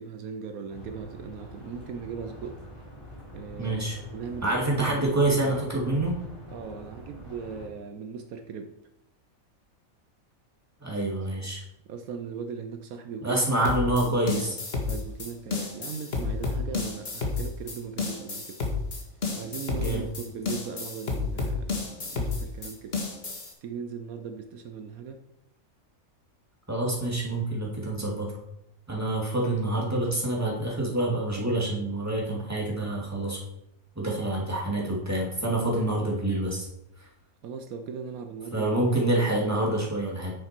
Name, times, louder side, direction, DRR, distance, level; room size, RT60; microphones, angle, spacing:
voice 1, 0.0-2.6 3.3-5.5 6.5-8.7 11.9-13.7 13.9-14.2 14.9-18.6 19.4-23.0 23.6-25.2 37.4-39.1, right 6 dB, 75° right, 7 dB, 1.2 m, -38 dB
sound 1, 0.7-7.7, equal, 20° left, 3.8 m, -45 dB
voice 2, 3.6-4.0 4.4-6.2 10.8-11.6 13.2-14.6 19.7-20.0 26.7-28.3 28.9-33.4 34.0-36.7 38.5-40.3, right 1 dB, 10° right, -3 dB, 2.5 m, -27 dB
sound 2, 13.6-23.5, left 4 dB, 45° left, 1.8 m, -31 dB
9.8 x 6.8 x 4.5 m, 0.85 s
omnidirectional pair, 1.5 m